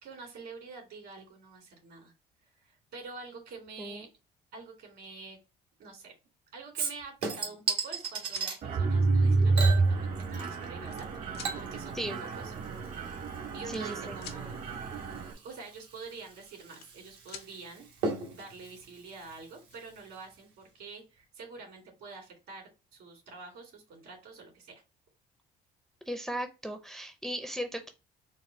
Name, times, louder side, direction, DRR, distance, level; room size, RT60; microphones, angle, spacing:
voice 1, 0.0-2.1 2.6-4.1 4.5-5.4 5.8-6.1 6.5-12.5 13.5-14.5 15.4-17.9 18.3-24.7, right 4 dB, 75° right, 0 dB, 2.2 m, -47 dB
Chink clink / Liquid, 6.7-8.6 9.5-10.7 11.0-20.0 20.3-20.4, right 5 dB, 90° right, 1.2 m, -38 dB
sound 1, 7.9-8.5 9.5-9.6 10.4-11.1 11.3-11.5 12.7-12.8 13.0-13.2 13.5-14.4 16.3-17.0 17.3-17.5 19.0-19.1 19.4-19.8, left 8 dB, 75° left, 0.7 m, -48 dB
Mechanisms, 8.6-15.3, right 3 dB, 55° right, 0.9 m, -29 dB
voice 2, 13.7-14.2 26.1-27.9, equal, ahead, 6 dB, 0.5 m, -36 dB
4.1 x 2.0 x 3.8 m, 0.28 s
cardioid pair, 110°, 17 cm